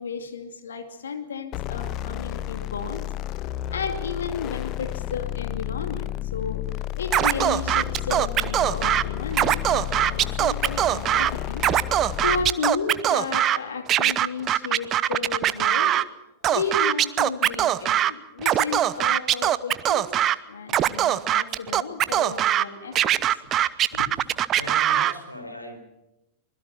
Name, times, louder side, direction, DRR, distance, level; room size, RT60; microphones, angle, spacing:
voice 1, 0.0-3.0 3.7-11.6 12.0-16.0 16.4-23.4 24.9-25.0, left 5 dB, 70° left, 7 dB, 2.5 m, -33 dB
sound 1, 1.5-12.6, left 13 dB, 40° left, 0.7 m, -32 dB
Scratching (performance technique), 7.1-9.0 9.3-11.3 11.6-13.6 13.9-16.0 16.4-18.1 18.4-20.4 20.7-22.6 23.0-25.1, right 12 dB, 30° right, 0.8 m, -21 dB
voice 2, 24.5-25.8, left 1 dB, 85° left, 6 dB, 4.2 m, -38 dB
25.0 x 21.0 x 6.0 m, 0.88 s
figure-of-eight pair, 90°, 0 cm